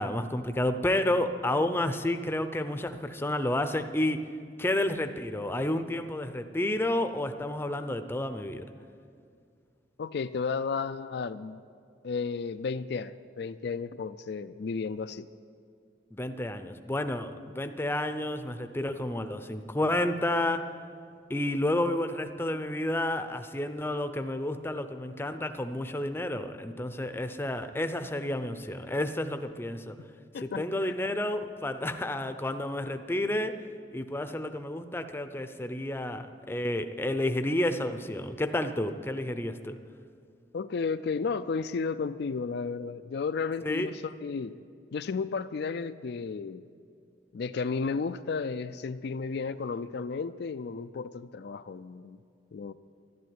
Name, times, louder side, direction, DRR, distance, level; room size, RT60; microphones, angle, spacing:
voice 1, 0.0-4.3 4.6-8.7 16.1-20.7 21.3-30.0 30.4-33.6 33.9-39.8 43.6-43.9, left 1 dB, 15° left, 9 dB, 0.6 m, -30 dB
voice 2, 10.0-11.6 12.0-15.3 30.3-30.9 40.5-44.5 44.9-46.7 47.3-52.2 52.5-52.7, left 5 dB, 65° left, 11 dB, 0.4 m, -33 dB
12.0 x 12.0 x 9.6 m, 2.3 s
head